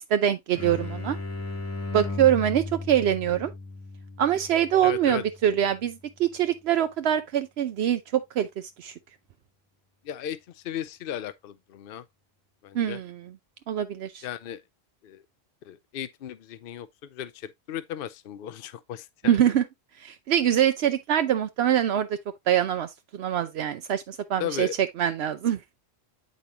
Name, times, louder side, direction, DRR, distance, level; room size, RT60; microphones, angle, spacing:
voice 1, 0.1-1.2 1.9-3.5 4.2-8.9 12.7-13.2 13.7-14.2 19.2-19.6 20.0-22.1 22.5-24.7 25.0-25.6, right 10 dB, 80° right, 0.8 m, -24 dB
sound 1, 0.5-6.0, left 2 dB, 15° left, 0.9 m, -36 dB
voice 2, 4.8-5.2 10.0-12.0 12.6-13.0 14.2-14.6 15.0-15.2 15.6-19.4 24.4-24.7, left 10 dB, 65° left, 0.7 m, -36 dB
8.2 x 5.3 x 2.8 m
omnidirectional pair, 1.1 m